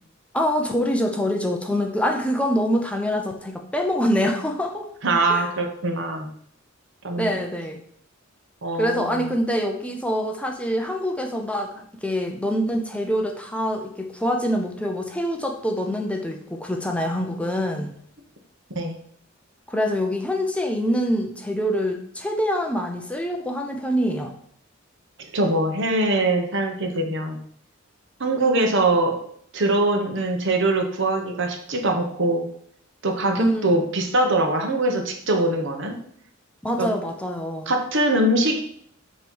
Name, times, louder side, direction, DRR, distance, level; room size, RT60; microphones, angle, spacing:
voice 1, 0.3-4.9 5.3-5.4 7.2-7.8 8.8-17.9 19.7-24.3 33.4-33.7 36.6-37.7, equal, 5° left, 3 dB, 0.6 m, -25 dB
voice 2, 5.0-6.3 7.0-7.3 8.6-9.3 18.7-19.0 25.3-27.4 28.2-29.1 29.5-32.5 33.0-36.0 36.8-36.9 37.7-38.6, right 2 dB, 65° right, 4 dB, 1.1 m, -22 dB
7.3 x 3.2 x 5.4 m, 0.63 s
head